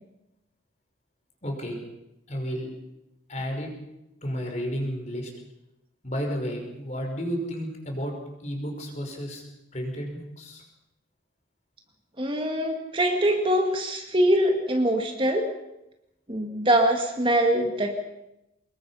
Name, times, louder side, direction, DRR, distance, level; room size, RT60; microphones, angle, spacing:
voice 1, 1.4-1.8 2.3-2.7 3.3-3.7 4.2-5.3 6.0-8.1 8.4-9.4 9.7-10.6, equal, 35° left, 2 dB, 5.3 m, -32 dB
voice 2, 12.2-15.5 16.3-17.9, right 1 dB, 25° right, 3 dB, 2.1 m, -23 dB
25.0 x 21.0 x 5.7 m, 0.89 s
head